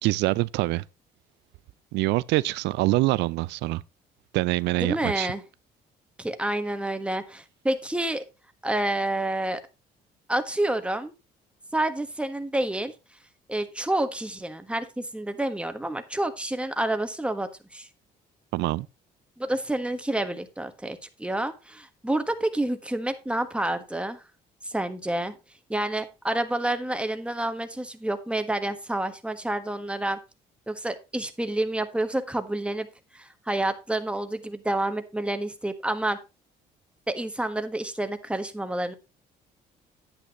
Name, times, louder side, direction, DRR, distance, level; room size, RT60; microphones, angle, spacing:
voice 1, 0.0-0.8 1.9-3.8 4.3-5.3 18.5-18.9, right 19 dB, 75° right, 0.4 m, -25 dB
voice 2, 4.8-5.4 6.2-8.2 8.6-9.6 10.3-11.1 11.7-12.9 13.5-17.9 19.4-24.2 24.6-25.3 25.7-30.2 30.7-32.9 33.1-36.2 37.1-38.9, right 1 dB, 5° right, 1.4 m, -29 dB
9.7 x 8.6 x 3.0 m
supercardioid pair, 70°, 18 cm